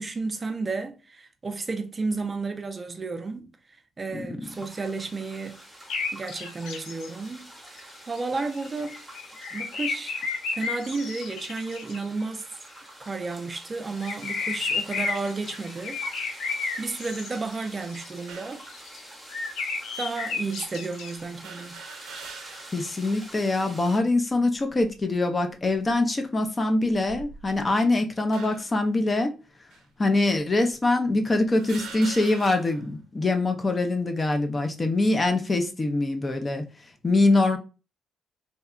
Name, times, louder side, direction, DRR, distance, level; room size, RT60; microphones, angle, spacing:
voice 1, 0.0-3.5 4.0-5.6 6.1-9.0 9.5-10.2 10.5-12.5 13.0-18.6 20.0-21.8, right 3 dB, 30° right, 0.4 m, -32 dB
sound 1, 4.4-24.0, equal, 5° right, 1.0 m, -46 dB
sound 2, 5.9-7.1 7.8-7.9 8.2-12.0 14.0-18.1 18.5-19.0 19.3-21.1, left 4 dB, 85° left, 0.5 m, -32 dB
sound 3, 18.3-18.7 19.5-19.6 21.4-22.9 23.3-23.4 24.6-25.0 25.7-25.9 26.9-27.7 28.3-28.8 29.7-29.8 30.7-30.8 31.6-32.9, right 6 dB, 85° right, 0.5 m, -43 dB
voice 2, 22.7-29.3 30.0-36.7 37.0-37.6, left 2 dB, 25° left, 0.5 m, -24 dB
2.8 x 2.2 x 2.3 m
cardioid pair, 90°, 0 cm